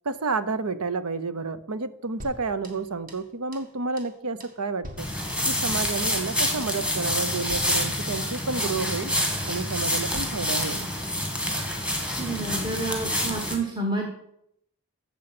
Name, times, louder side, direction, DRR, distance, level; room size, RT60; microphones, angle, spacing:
voice 1, 0.0-5.1 5.5-9.1 9.5-10.9, right 4 dB, 90° right, 13 dB, 0.9 m, -30 dB
sound 1, 2.2-3.3 3.5-3.7 4.0-4.1 4.4-5.9 6.2-6.4 6.6-6.8 7.0-7.2 7.5-8.6 8.8-9.0 9.3-9.4 9.7-9.9 10.1-11.2 11.5-11.6 11.9-12.1 12.3-12.5, equal, 40° right, 2.0 m, -45 dB
sound 2, 5.0-13.6, left 1 dB, 5° right, 2.2 m, -27 dB
voice 2, 12.1-14.1, right 2 dB, 20° right, 0 dB, 1.5 m, -29 dB
15.5 x 7.3 x 6.0 m, 0.75 s
head